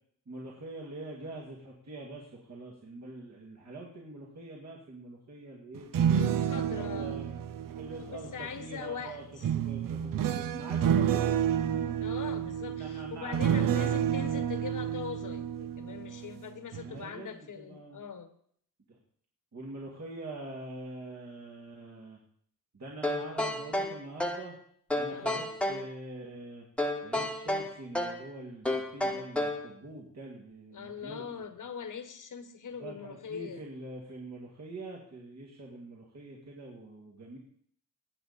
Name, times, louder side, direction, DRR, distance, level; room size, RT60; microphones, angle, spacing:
voice 1, 0.3-5.9 6.5-7.3 7.8-9.2 9.5-11.4 12.6-14.0 16.8-18.0 19.5-22.2 22.7-24.5 24.9-26.7 27.0-31.5 32.8-37.4, right 2 dB, 50° right, -2 dB, 2.2 m, -44 dB
sound 1, 5.8-8.6 9.4-16.4 16.7-17.0, right 9 dB, 70° right, 0.7 m, -30 dB
voice 2, 6.1-7.2 8.0-9.4 12.0-18.3 25.1-25.4 30.7-33.6, left 6 dB, 60° left, 9 dB, 1.3 m, -42 dB
sound 2, 23.0-24.5 24.9-25.9 26.8-28.2 28.6-29.7, left 1 dB, 5° left, 1.2 m, -31 dB
20.0 x 8.8 x 4.2 m, 0.63 s
wide cardioid pair, 175°, 35 cm